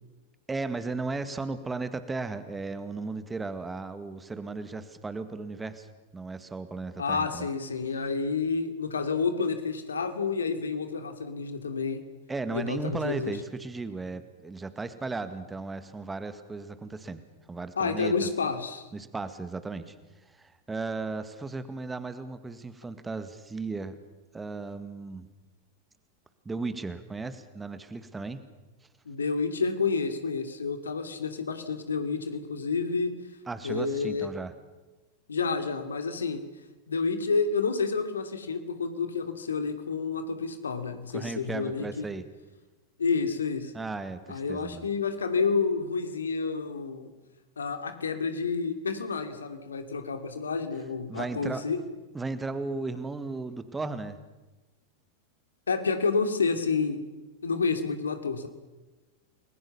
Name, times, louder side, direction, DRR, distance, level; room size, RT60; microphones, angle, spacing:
voice 1, 0.5-5.9 6.1-7.5 12.3-17.2 17.5-18.3 18.9-20.0 20.3-24.0 24.3-25.3 26.5-28.4 33.5-34.5 41.1-42.3 43.7-44.9 51.1-51.6 52.1-54.2, right 3 dB, 10° right, 11 dB, 1.9 m, -35 dB
voice 2, 7.0-12.0 12.5-13.4 17.8-18.9 29.1-33.1 33.6-34.3 35.3-36.4 36.9-42.1 43.0-43.7 44.3-47.1 47.6-51.8 55.7-57.0 57.4-58.5, left 4 dB, 70° left, 8 dB, 2.7 m, -29 dB
30.0 x 21.0 x 7.1 m, 1.1 s
figure-of-eight pair, 90°, 0 cm